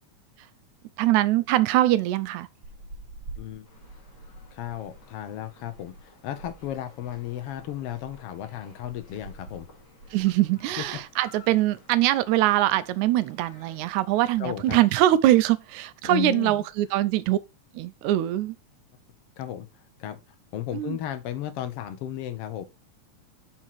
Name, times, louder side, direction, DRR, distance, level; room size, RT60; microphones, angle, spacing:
voice 1, 1.0-2.5 10.1-17.4 17.7-18.6 20.7-21.0, right 14 dB, 85° right, 2.0 m, -23 dB
sound 1, 2.6-11.1 11.4-11.6 12.0-12.9 13.2-13.5 13.8-13.9 14.1-14.5 15.1-15.6, right 2 dB, 50° right, 2.2 m, -48 dB
voice 2, 3.4-3.7 4.5-9.7 14.4-14.8 16.0-16.6 19.4-19.7 20.0-20.2 20.5-22.7, left 10 dB, 65° left, 1.6 m, -34 dB
sound 2, 3.6-14.3, left 3 dB, 35° left, 2.8 m, -56 dB
5.9 x 4.4 x 4.5 m
omnidirectional pair, 3.4 m